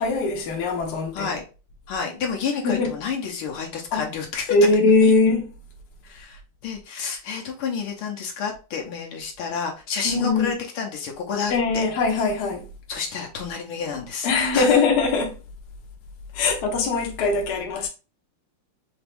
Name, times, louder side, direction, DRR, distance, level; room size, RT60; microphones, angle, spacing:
voice 1, 0.0-1.3 2.6-3.0 3.9-4.1 4.5-5.5 10.0-10.5 11.5-12.7 14.2-15.4 16.3-17.9, left 3 dB, 60° left, 1.3 m, -21 dB
voice 2, 1.9-4.6 5.0-5.1 6.1-11.8 12.9-14.7, left 6 dB, 75° left, 1.8 m, -30 dB
4.0 x 3.5 x 3.4 m
omnidirectional pair, 2.4 m